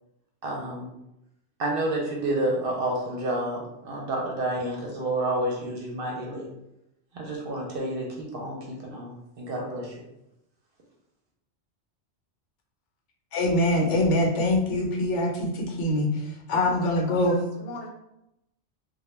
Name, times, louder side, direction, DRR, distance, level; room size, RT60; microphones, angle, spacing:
voice 1, 0.4-0.9 1.6-6.5 7.1-9.9, right 1 dB, 60° right, -1 dB, 0.7 m, -29 dB
voice 2, 13.3-16.2 16.5-17.4, left 1 dB, 90° left, 1 dB, 0.9 m, -24 dB
voice 3, 17.1-17.9, left 2 dB, 65° left, -1 dB, 0.7 m, -41 dB
2.1 x 2.1 x 3.0 m, 0.85 s
omnidirectional pair, 1.2 m